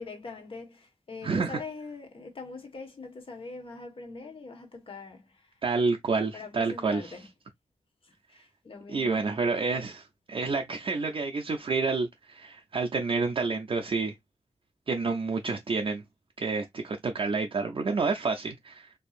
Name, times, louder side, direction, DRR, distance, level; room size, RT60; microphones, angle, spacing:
voice 1, 0.0-5.6 6.3-7.3 8.0-9.3 9.6-9.8, left 3 dB, 50° left, 1.4 m, -43 dB
voice 2, 1.2-1.6 5.6-7.1 8.9-10.0 10.3-14.2 14.9-16.0 16.4-19.0, right 4 dB, 45° right, 0.5 m, -29 dB
4.4 x 2.9 x 2.4 m
wide cardioid pair, 150°, 12 cm